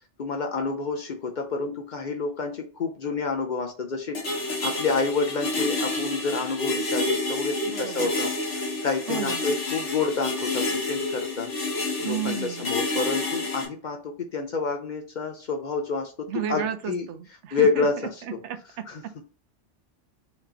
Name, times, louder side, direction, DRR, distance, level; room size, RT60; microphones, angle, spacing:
voice 1, 0.2-8.5 8.8-11.5 12.0-17.1 17.5-17.9 18.3-18.4 18.9-19.0, left 4 dB, 55° left, 3 dB, 0.6 m, -28 dB
sound 1, 4.1-13.7, left 2 dB, 85° left, 1.5 m, -29 dB
voice 2, 7.6-8.1 9.1-9.4 12.0-12.7 16.3-17.9 18.2-19.1, right 9 dB, 80° right, 11 dB, 0.9 m, -33 dB
4.5 x 2.9 x 3.8 m, 0.38 s
omnidirectional pair, 1.2 m